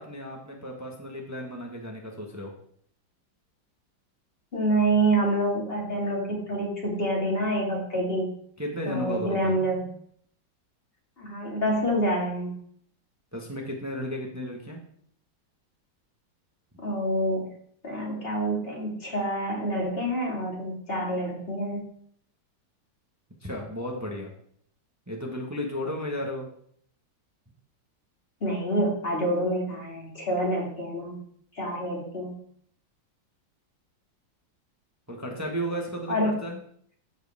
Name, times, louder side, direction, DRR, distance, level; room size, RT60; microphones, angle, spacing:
voice 1, 0.0-2.5 8.6-9.5 13.3-14.8 23.4-24.3 25.1-26.5 35.1-36.6, equal, 10° right, 0 dB, 0.9 m, -34 dB
voice 2, 4.5-8.3 8.9-9.8 11.2-12.6 16.8-17.5 17.8-21.8 28.4-31.2 31.6-32.4 36.1-36.3, right 1 dB, 30° left, -3 dB, 2.4 m, -27 dB
13.5 x 4.7 x 3.5 m, 0.63 s
omnidirectional pair, 2.1 m